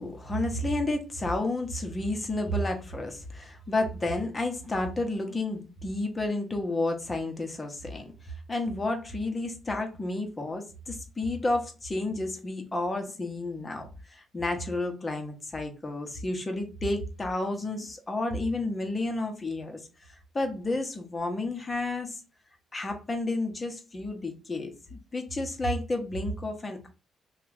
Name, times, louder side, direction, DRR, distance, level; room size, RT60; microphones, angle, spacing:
voice 1, 0.0-8.0 8.5-13.9 14.3-19.8 20.3-22.1 22.7-26.9, left 2 dB, 25° left, 0.9 m, -31 dB
2.9 x 2.4 x 3.4 m
cardioid pair, 90°, 0 cm